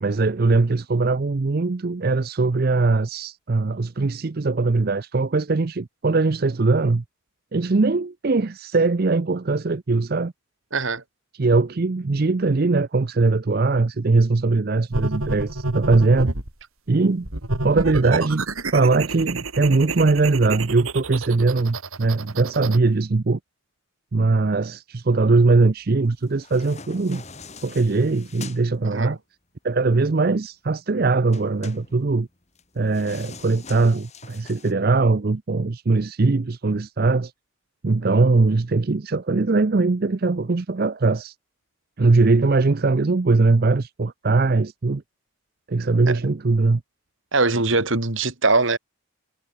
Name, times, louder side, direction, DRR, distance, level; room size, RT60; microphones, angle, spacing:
voice 1, 0.0-7.0 7.5-10.3 11.3-16.3 16.9-18.4 18.7-23.4 24.1-27.2 27.6-29.2 29.6-32.3 32.8-37.3 37.8-41.3 42.0-45.0 45.7-46.8, right 3 dB, 45° right, 0.5 m, -21 dB
voice 2, 10.7-11.0 28.9-29.2 46.1-46.2 47.3-48.8, right 3 dB, 65° right, 2.6 m, -21 dB
sound 1, 14.9-16.5 17.2-22.8, right 2 dB, 80° right, 4.1 m, -29 dB
sound 2, 26.2-28.6 31.3-34.7, left 5 dB, 30° left, 3.6 m, -43 dB
head